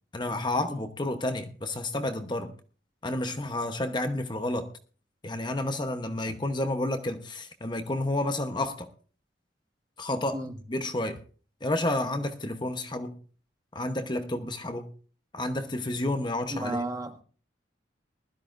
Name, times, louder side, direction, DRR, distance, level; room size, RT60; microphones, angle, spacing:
voice 1, 0.1-2.5 3.0-4.7 5.2-8.9 10.0-10.4 10.7-11.2 11.6-13.2 13.7-14.9 15.3-16.8, left 1 dB, 25° left, 0.9 m, -30 dB
voice 2, 16.5-17.2, right 2 dB, 20° right, 1.3 m, -33 dB
20.0 x 13.0 x 2.5 m
head